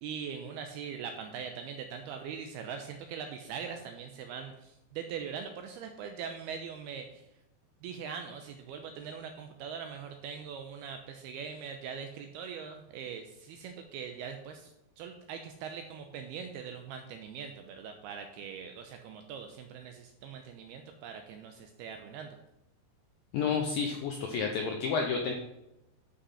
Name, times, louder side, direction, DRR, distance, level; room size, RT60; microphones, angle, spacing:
voice 1, 0.0-7.2 7.8-22.4, right 7 dB, 80° right, 5 dB, 2.3 m, -42 dB
voice 2, 23.3-25.3, left 5 dB, 85° left, 2 dB, 2.0 m, -30 dB
11.5 x 5.6 x 5.6 m, 0.92 s
omnidirectional pair, 5.3 m